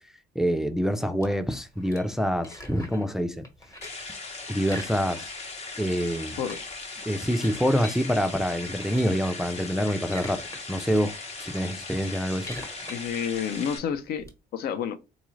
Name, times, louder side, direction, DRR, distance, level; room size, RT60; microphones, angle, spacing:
voice 1, 0.4-3.4 4.5-5.3 5.8-6.4 7.1-10.4 10.7-12.6, equal, 5° right, 0.3 m, -26 dB
sound 1, 1.2-3.1 3.4-4.1 4.6-5.5 5.8-5.9 6.2-8.0 8.6-9.3 9.8-10.6 11.0-14.3, left 1 dB, 20° left, 1.1 m, -43 dB
sound 2, 3.8-13.8, left 3 dB, 40° left, 0.9 m, -39 dB
voice 2, 12.9-14.3 14.5-15.0, left 8 dB, 70° left, 0.5 m, -29 dB
3.9 x 2.4 x 3.1 m
cardioid pair, 110°, 17 cm